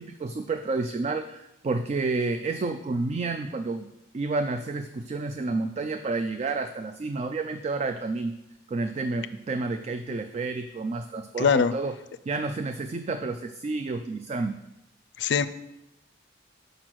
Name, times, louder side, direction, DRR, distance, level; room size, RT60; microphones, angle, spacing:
voice 1, 0.0-3.9 4.1-8.4 8.7-12.0 12.3-14.6, right 3 dB, 35° right, 8 dB, 0.3 m, -30 dB
voice 2, 11.4-11.7 15.2-15.5, left 6 dB, 70° left, 14 dB, 0.4 m, -21 dB
6.2 x 5.0 x 6.0 m, 0.88 s
head